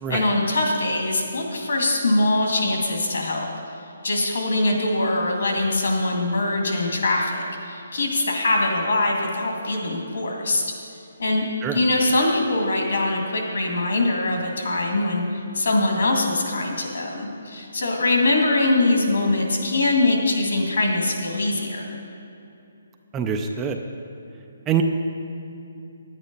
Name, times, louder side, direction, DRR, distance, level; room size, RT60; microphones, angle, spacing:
voice 1, 0.1-3.5 4.0-10.7 11.2-22.0, left 2 dB, 65° left, 1 dB, 2.2 m, -22 dB
voice 2, 23.1-23.8 24.7-24.8, right 8 dB, 10° right, 4 dB, 0.4 m, -24 dB
10.5 x 9.1 x 5.4 m, 2.8 s
hypercardioid pair, 175°, 0 cm